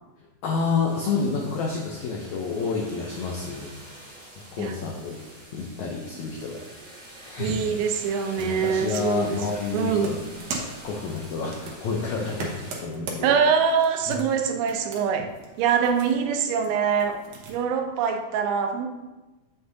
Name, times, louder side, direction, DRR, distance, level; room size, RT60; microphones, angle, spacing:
voice 1, 0.4-4.2 4.5-5.2 5.5-6.6 6.9-7.6 8.4-13.4 14.1-14.2, left 4 dB, 90° left, 0 dB, 1.6 m, -29 dB
sound 1, 0.9-12.8, right 1 dB, 35° right, 1.8 m, -45 dB
voice 2, 7.4-9.4 9.7-10.1 13.2-15.3 15.6-17.2 17.5-18.9, right 6 dB, 85° right, 5 dB, 2.6 m, -24 dB
sound 2, 8.0-17.6, right 3 dB, 70° right, 2.1 m, -41 dB
7.8 x 6.4 x 2.7 m, 1.1 s
omnidirectional pair, 4.3 m